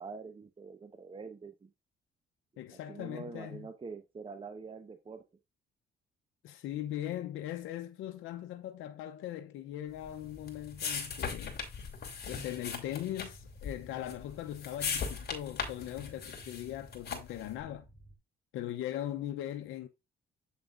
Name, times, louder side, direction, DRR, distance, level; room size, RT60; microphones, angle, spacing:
voice 1, 0.0-1.7 2.7-5.2, right 4 dB, 25° right, 1.0 m, -45 dB
voice 2, 2.6-3.7 6.4-11.6 12.3-17.8 18.5-19.9, left 12 dB, 85° left, 0.7 m, -40 dB
sound 1, 10.0-17.5, left 5 dB, 55° left, 2.9 m, -39 dB
sound 2, 10.1-18.2, right 2 dB, 15° left, 2.9 m, -57 dB
8.2 x 7.2 x 2.5 m
cardioid pair, 90°, 20 cm